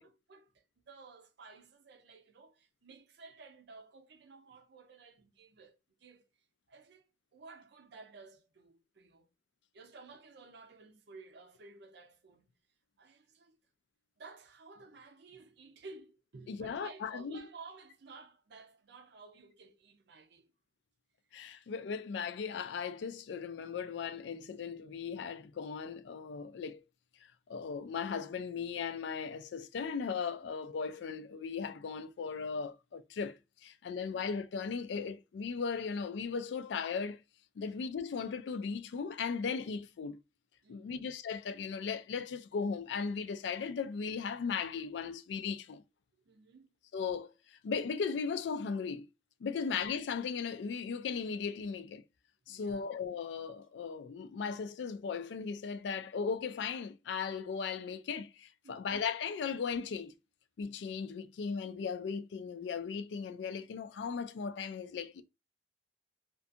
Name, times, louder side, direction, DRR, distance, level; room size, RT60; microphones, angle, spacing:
voice 1, 0.0-6.2 6.7-7.0 7.3-9.3 9.7-12.5 13.0-13.6 14.2-20.5 30.4-30.5 33.9-34.2 40.6-41.0 46.2-46.7 49.5-49.7 52.5-52.9 58.6-58.9, right 4 dB, 65° right, 0.5 m, -54 dB
voice 2, 16.5-17.4 21.3-26.8 27.5-37.2 37.6-40.2 40.7-45.8 46.9-49.1 49.4-52.0 52.5-60.1 60.6-65.2, left 5 dB, 75° left, 0.3 m, -37 dB
2.6 x 2.4 x 2.5 m
head